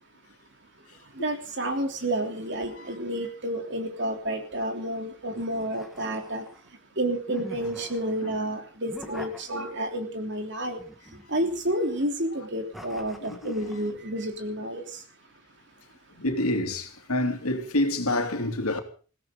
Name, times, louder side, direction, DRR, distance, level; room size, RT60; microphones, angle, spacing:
voice 1, 1.1-6.4 7.0-10.8 11.3-15.0, right 1 dB, 55° right, 3.2 m, -30 dB
sound 1, 5.3-6.7 7.3-8.2 8.9-10.0 10.8-11.9 12.7-13.9, equal, ahead, 1.8 m, -45 dB
voice 2, 13.2-13.5 16.2-18.8, left 1 dB, 90° left, 2.9 m, -28 dB
21.0 x 16.5 x 3.8 m
head